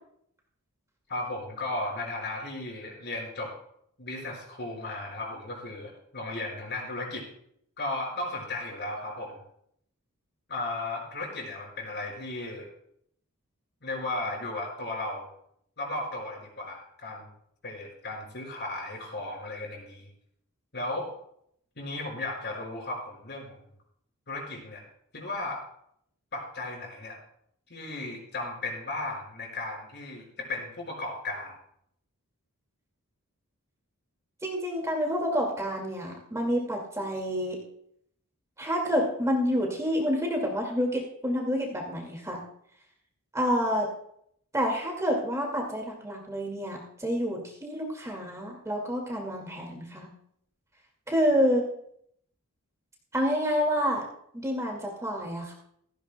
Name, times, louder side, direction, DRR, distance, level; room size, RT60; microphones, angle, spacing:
voice 1, 1.1-3.5 4.0-7.2 7.8-9.4 10.5-12.7 13.8-15.3 15.8-17.3 17.6-20.1 20.7-21.1 21.8-23.6 24.3-24.8 25.1-25.6 26.3-27.2 27.7-31.5, left 2 dB, 50° left, 0 dB, 5.1 m, -35 dB
voice 2, 34.4-37.6 38.6-42.4 43.3-43.9 44.5-50.1 51.1-51.7 53.1-54.0 54.3-55.5, equal, 15° right, 0 dB, 2.0 m, -28 dB
16.5 x 15.0 x 2.2 m, 0.70 s
head